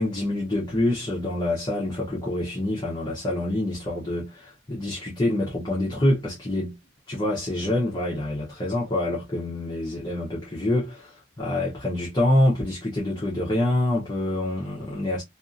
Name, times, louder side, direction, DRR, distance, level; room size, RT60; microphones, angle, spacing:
voice 1, 0.0-6.7 7.1-15.2, left 1 dB, 25° left, 0.7 m, -26 dB
2.6 x 2.4 x 2.4 m
head